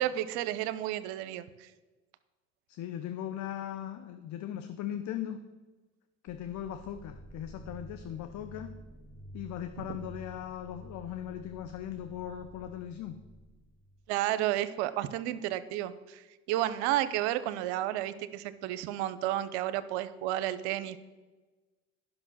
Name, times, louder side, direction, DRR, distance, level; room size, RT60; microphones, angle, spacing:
voice 1, 0.0-1.7 14.1-21.0, right 13 dB, 80° right, 14 dB, 0.6 m, -32 dB
voice 2, 2.7-5.4 6.2-8.7 9.3-13.2, left 10 dB, 60° left, 8 dB, 0.7 m, -39 dB
sound 1, 6.3-14.1, right 1 dB, 25° left, 3.3 m, -50 dB
10.5 x 6.0 x 6.2 m, 1.2 s
hypercardioid pair, 65°, 33 cm